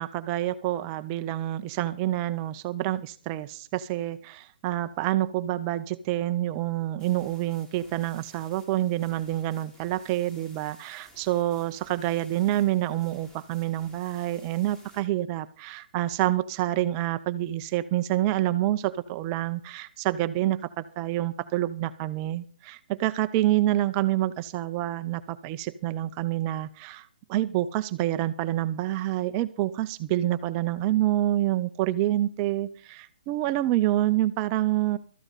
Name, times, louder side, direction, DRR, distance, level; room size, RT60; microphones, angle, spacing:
voice 1, 0.0-35.0, right 14 dB, 25° right, 11 dB, 0.6 m, -27 dB
sound 1, 7.0-15.0, equal, 10° left, 3.6 m, -55 dB
14.0 x 13.5 x 4.0 m, 0.40 s
hypercardioid pair, 150°, 5 cm